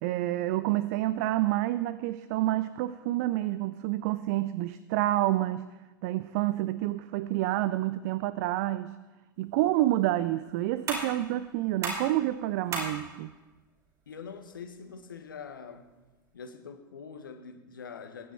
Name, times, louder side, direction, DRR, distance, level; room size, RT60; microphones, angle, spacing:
voice 1, 0.0-5.6 6.0-8.9 9.4-13.3, right 15 dB, 45° right, 15 dB, 0.5 m, -28 dB
sound 1, 9.3-16.3, right 3 dB, 30° right, 5.0 m, -41 dB
voice 2, 14.1-15.9 16.3-18.3, left 6 dB, 70° left, 7 dB, 1.5 m, -44 dB
21.5 x 10.0 x 4.4 m, 1.2 s
figure-of-eight pair, 90°, 11 cm